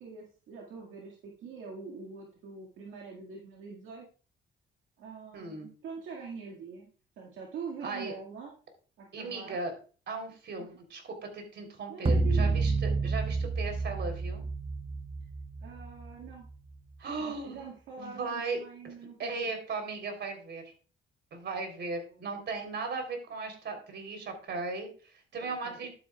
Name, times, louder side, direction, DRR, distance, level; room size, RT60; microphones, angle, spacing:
voice 1, 0.0-4.0 5.0-6.9 7.2-8.5 9.0-9.6 10.6-10.7 11.9-12.5 15.6-16.5 17.2-19.5 22.1-22.4 25.4-25.9, right 5 dB, 85° right, -2 dB, 1.9 m, -44 dB
voice 2, 5.3-5.7 7.8-8.1 9.1-9.7 10.1-14.4 17.0-17.7 18.0-18.9 19.2-20.6 21.3-25.9, right 3 dB, 60° right, 4 dB, 3.3 m, -37 dB
sound 1, 12.1-16.5, right 3 dB, 30° right, 0.8 m, -29 dB
11.5 x 8.8 x 2.3 m, 0.38 s
cardioid pair, 90°, 20 cm